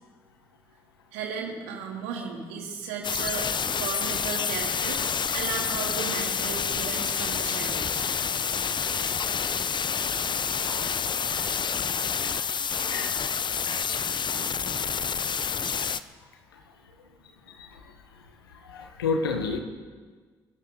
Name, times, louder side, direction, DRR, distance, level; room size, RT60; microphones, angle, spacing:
voice 1, 1.1-8.0, right 5 dB, 75° right, 0 dB, 2.9 m, -35 dB
sound 1, 3.0-16.0, left 6 dB, 40° left, 0.8 m, -28 dB
voice 2, 12.1-13.2 14.0-14.1 14.6-14.8 17.5-17.9 18.5-19.6, left 4 dB, 85° left, 5 dB, 1.3 m, -32 dB
28.0 x 11.5 x 3.9 m, 1.5 s
hypercardioid pair, 45°, 12 cm